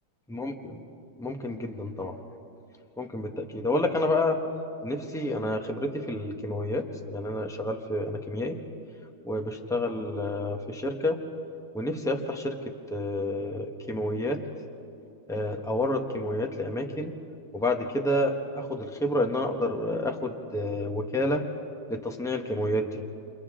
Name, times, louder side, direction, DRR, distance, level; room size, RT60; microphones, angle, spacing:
voice 1, 0.3-0.8 1.2-2.2 3.0-4.4 4.8-8.6 9.2-11.2 11.7-12.5 12.9-14.4 15.3-17.1 17.5-21.4 21.9-23.0, left 1 dB, ahead, 3 dB, 0.9 m, -29 dB
30.0 x 27.5 x 3.8 m, 2.7 s
omnidirectional pair, 2.4 m